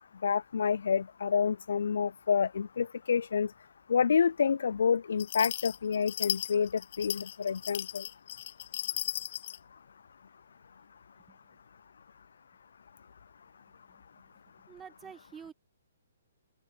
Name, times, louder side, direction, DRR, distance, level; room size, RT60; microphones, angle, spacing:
voice 1, 0.2-3.5 3.9-8.0, left 6 dB, 75° left, 0.4 m, -28 dB
sound 1, 5.2-9.6, left 12 dB, 50° left, 2.8 m, -36 dB
voice 2, 14.6-15.5, right 7 dB, 10° right, 7.5 m, -48 dB
open air
hypercardioid pair, 140°, 0 cm